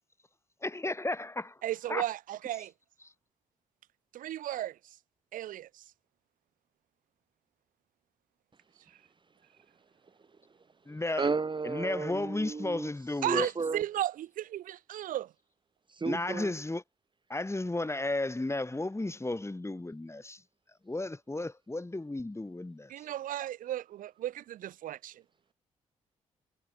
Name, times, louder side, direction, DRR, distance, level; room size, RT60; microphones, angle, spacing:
voice 1, 0.6-1.6 1.9-2.0 10.9-11.3 11.6-13.5 16.0-16.8 17.3-20.4 20.8-22.9, left 2 dB, 20° left, 6.8 m, -33 dB
voice 2, 1.6-2.7 4.1-4.8 5.3-5.8 13.2-15.3 22.9-25.2, right 12 dB, 80° right, 2.9 m, -35 dB
voice 3, 11.2-12.9 13.2-13.8 15.9-16.5, right 4 dB, 35° right, 1.7 m, -33 dB
supercardioid pair, 50°, 14 cm